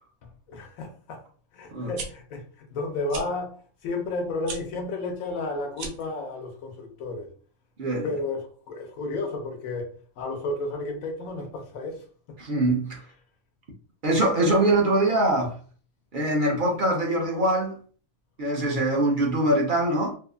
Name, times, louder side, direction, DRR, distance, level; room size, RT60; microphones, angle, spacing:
voice 1, 0.5-1.2 1.5-7.3 8.0-12.0, left 2 dB, 85° left, 1.1 m, -32 dB
sound 1, 1.8-2.1 3.1-3.3 4.4-4.6 5.7-6.1, right 4 dB, 85° right, 1.1 m, -36 dB
voice 2, 7.8-8.1 12.4-13.0 14.0-15.6 16.1-17.8 18.4-20.2, right 1 dB, 50° right, 0.6 m, -23 dB
2.8 x 2.4 x 2.4 m
omnidirectional pair, 1.4 m